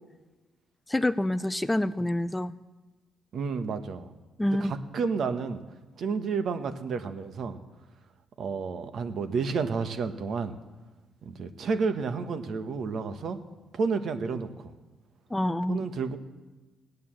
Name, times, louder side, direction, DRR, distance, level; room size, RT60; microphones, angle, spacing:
voice 1, 0.9-2.5 4.4-4.7 15.3-15.9, left 1 dB, 10° left, 15 dB, 0.4 m, -27 dB
voice 2, 3.3-4.1 4.4-5.6 6.0-7.6 8.4-10.5 11.2-13.4 13.7-14.7 15.7-16.2, right 5 dB, 60° right, 9 dB, 1.2 m, -31 dB
17.0 x 9.4 x 7.7 m, 1.2 s
cardioid pair, 90°, 0 cm